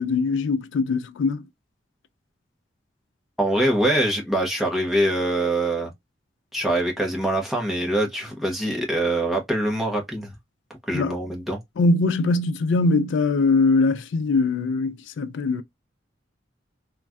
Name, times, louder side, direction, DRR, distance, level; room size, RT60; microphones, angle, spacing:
voice 1, 0.0-1.4 10.9-11.2 11.8-15.6, left 3 dB, 75° left, 0.3 m, -22 dB
voice 2, 3.4-5.9 6.5-10.3 10.9-11.6, right 1 dB, ahead, 0.8 m, -24 dB
3.1 x 2.2 x 2.4 m
head